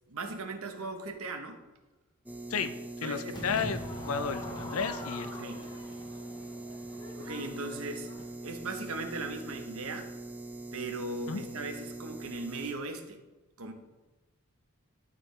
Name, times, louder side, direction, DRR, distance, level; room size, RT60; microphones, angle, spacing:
voice 1, 0.1-1.6 3.0-3.4 5.3-5.6 7.2-8.1 8.4-10.1 10.7-13.2 13.6-13.7, right 3 dB, 70° right, 6 dB, 1.0 m, -38 dB
sound 1, 2.3-12.7, right 2 dB, 5° right, 0.4 m, -42 dB
voice 2, 2.5-5.5 11.3-11.4, left 5 dB, 65° left, 11 dB, 0.5 m, -33 dB
Crowd / Fireworks, 3.3-8.6, left 1 dB, 20° left, 1.0 m, -43 dB
12.0 x 4.6 x 3.3 m, 1.1 s
head